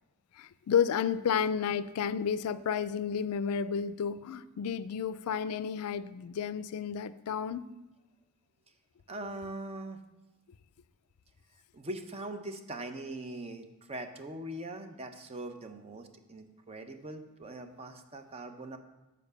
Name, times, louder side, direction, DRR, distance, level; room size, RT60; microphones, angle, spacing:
voice 1, 0.3-7.7, left 7 dB, 85° left, 15 dB, 0.4 m, -31 dB
voice 2, 9.1-10.0 11.7-18.8, right 1 dB, 30° right, 7 dB, 0.6 m, -41 dB
7.0 x 4.8 x 6.7 m, 1.0 s
head